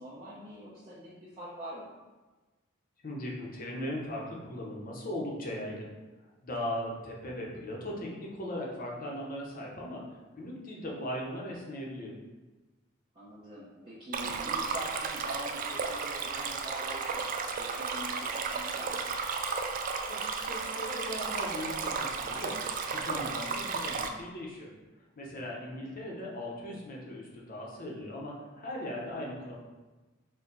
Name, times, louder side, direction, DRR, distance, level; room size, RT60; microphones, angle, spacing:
voice 1, 0.0-1.9 13.1-17.3 17.6-19.0, equal, 25° right, -11 dB, 0.9 m, -45 dB
voice 2, 3.0-5.9 6.4-12.1 20.1-22.5 22.9-24.7 25.2-29.5, left 1 dB, 45° left, -2 dB, 0.8 m, -38 dB
Stream, 14.1-24.1, right 5 dB, 45° right, 0.3 m, -34 dB
4.4 x 2.2 x 3.9 m, 1.2 s
head